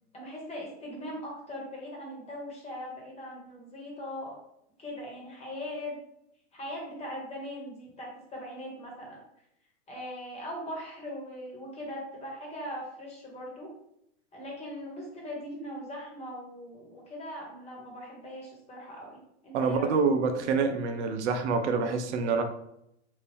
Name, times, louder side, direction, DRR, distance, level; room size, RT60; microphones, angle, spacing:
voice 1, 0.1-4.3 4.8-5.9 6.5-9.2 9.9-13.7 14.3-19.9, equal, 20° left, -2 dB, 1.3 m, -40 dB
voice 2, 19.5-22.4, right 4 dB, 75° right, 6 dB, 0.6 m, -26 dB
2.9 x 2.6 x 3.4 m, 0.78 s
hypercardioid pair, 120°, 35 cm